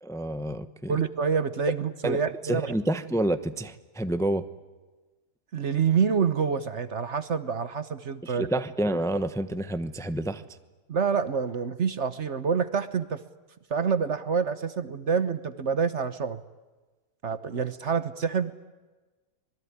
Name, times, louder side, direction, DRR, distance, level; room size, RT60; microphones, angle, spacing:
voice 1, 0.0-1.0 2.0-4.4 8.2-10.4, right 1 dB, ahead, 11 dB, 0.9 m, -29 dB
voice 2, 0.9-2.7 5.5-8.5 10.9-13.2 13.7-16.4 17.2-18.5, right 6 dB, 50° right, 13 dB, 1.3 m, -27 dB
26.0 x 21.5 x 9.7 m, 1.2 s
omnidirectional pair, 1.6 m